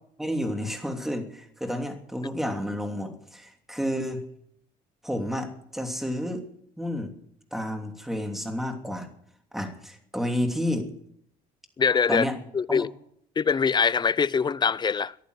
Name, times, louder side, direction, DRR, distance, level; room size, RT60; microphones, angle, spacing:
voice 1, 0.2-4.2 5.0-6.4 6.8-7.1 7.5-9.1 9.5-10.9 12.1-12.3 12.7-12.8, equal, ahead, 2.9 m, -30 dB
voice 2, 11.8-12.2 12.5-12.9 13.4-15.2, left 6 dB, 25° left, 0.5 m, -23 dB
15.0 x 11.0 x 8.0 m
cardioid pair, 110°, 17 cm